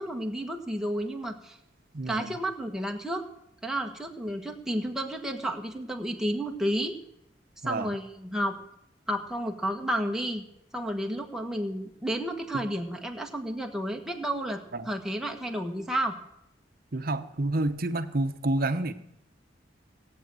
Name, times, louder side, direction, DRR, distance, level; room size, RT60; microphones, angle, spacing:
voice 1, 0.0-1.6 2.1-3.2 3.6-7.0 7.6-8.6 9.1-10.4 10.7-16.1, right 1 dB, 5° right, 2 dB, 1.4 m, -31 dB
voice 2, 1.9-2.4 7.6-7.9 12.5-12.6 14.7-14.9 16.9-18.9, right 2 dB, 50° right, 10 dB, 1.0 m, -29 dB
18.0 x 8.5 x 7.7 m, 0.80 s
head